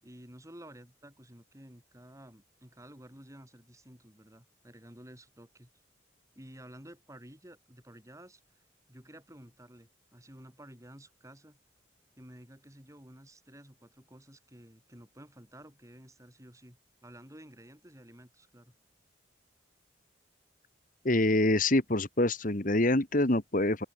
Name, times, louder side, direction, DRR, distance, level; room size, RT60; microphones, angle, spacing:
voice 1, 0.0-5.7 6.3-11.6 12.2-18.7, right 1 dB, 15° right, 7.8 m, -52 dB
voice 2, 21.0-23.9, left 2 dB, 45° left, 1.9 m, -26 dB
open air
head